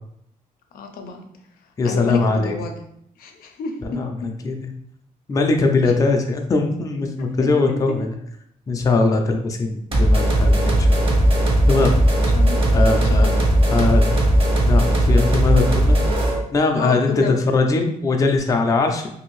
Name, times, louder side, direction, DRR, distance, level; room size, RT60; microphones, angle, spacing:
voice 1, 0.7-1.3 1.8-2.7 3.2-4.3 5.8-5.9 7.4-7.7 12.3-12.6 12.9-13.4 16.8-17.4, left 4 dB, 85° left, 4 dB, 0.5 m, -29 dB
voice 2, 1.8-2.6 4.0-4.1 4.4-4.7 5.3-8.1 8.7-11.2 11.7-11.9 12.7-13.3 13.7-14.2 14.6-16.0 16.5-19.1, left 3 dB, 25° left, 3 dB, 0.4 m, -20 dB
sound 1, 9.9-16.4, right 1 dB, 40° right, 0.7 m, -17 dB
2.6 x 2.6 x 3.0 m, 0.71 s
cardioid pair, 120°, 15 cm